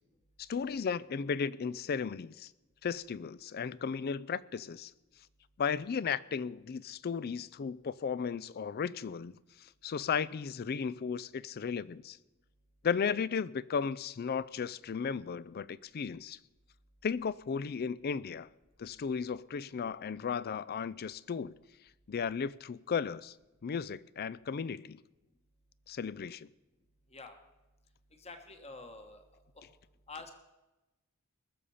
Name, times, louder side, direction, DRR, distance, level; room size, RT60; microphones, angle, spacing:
voice 1, 0.4-2.5 2.8-4.9 5.6-9.4 9.8-12.2 12.8-16.4 17.0-18.5 18.8-21.5 22.1-23.3 23.6-25.0 25.9-26.5, left 6 dB, 45° left, 0.4 m, -35 dB
voice 2, 28.2-29.2 29.6-29.7 30.1-30.3, left 3 dB, 30° left, 1.4 m, -47 dB
21.0 x 6.9 x 5.6 m
head